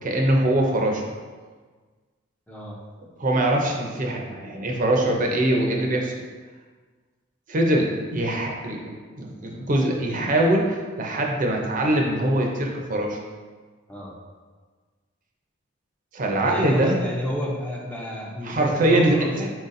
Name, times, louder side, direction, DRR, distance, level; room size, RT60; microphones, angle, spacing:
voice 1, 0.0-1.0 3.2-6.1 7.5-13.2 16.1-17.0 18.4-19.5, right 1 dB, 40° right, 0 dB, 0.5 m, -23 dB
voice 2, 16.4-19.5, left 1 dB, 10° left, -3 dB, 0.5 m, -30 dB
4.6 x 4.0 x 2.5 m, 1.4 s
head